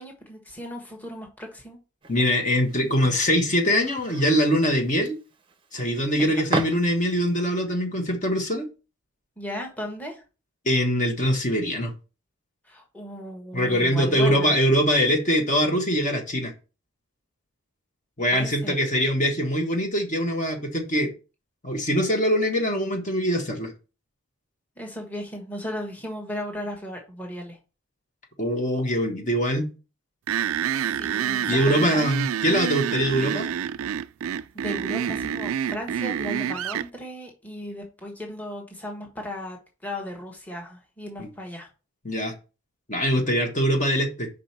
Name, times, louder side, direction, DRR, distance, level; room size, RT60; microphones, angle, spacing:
voice 1, 0.0-1.8 6.2-6.4 9.4-10.2 12.7-14.5 18.3-18.8 24.8-27.6 30.8-32.0 34.2-41.7, left 1 dB, 10° left, 1 dB, 1.3 m, -36 dB
sound 1, 2.0-7.4, right 3 dB, 25° right, 0.7 m, -35 dB
voice 2, 2.1-5.2 5.7-8.7 10.6-11.9 13.5-16.5 18.2-21.1 21.6-23.7 28.4-29.7 31.4-33.5 41.2-41.3 42.0-42.3 42.9-44.3, equal, 35° left, 2 dB, 1.3 m, -23 dB
sound 2, 30.3-36.9, right 9 dB, 80° right, 0.3 m, -27 dB
5.3 x 5.0 x 6.0 m, 0.32 s
head